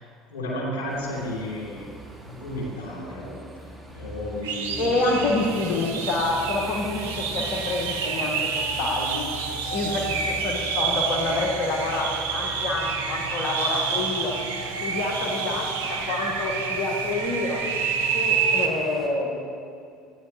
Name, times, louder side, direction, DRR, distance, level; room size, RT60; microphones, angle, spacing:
voice 1, 0.3-1.9 2.2-3.5 3.9-5.3, left 1 dB, 80° left, -5 dB, 3.0 m, -33 dB
sound 1, 0.9-19.1, equal, 15° right, 2.8 m, -43 dB
sound 2, 4.4-18.7, right 6 dB, 80° right, 0.8 m, -28 dB
voice 2, 4.8-9.3 9.7-14.4 14.8-17.6 18.1-19.5, left 2 dB, 55° left, 0 dB, 1.7 m, -27 dB
14.5 x 9.8 x 4.3 m, 2.4 s
hypercardioid pair, 65°, 0 cm